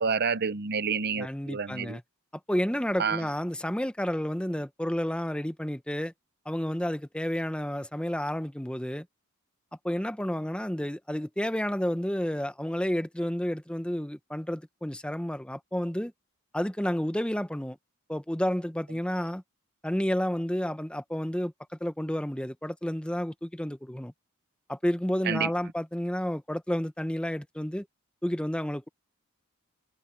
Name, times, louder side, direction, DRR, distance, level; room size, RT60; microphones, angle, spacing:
voice 1, 0.0-2.0 3.0-3.2 25.3-25.5, right 5 dB, 50° right, 0.8 m, -29 dB
voice 2, 1.2-2.0 2.5-6.1 6.5-9.1 9.8-16.1 16.5-17.8 18.1-19.4 19.8-21.5 21.8-24.1 24.7-27.9 28.2-28.9, equal, 5° left, 0.9 m, -30 dB
head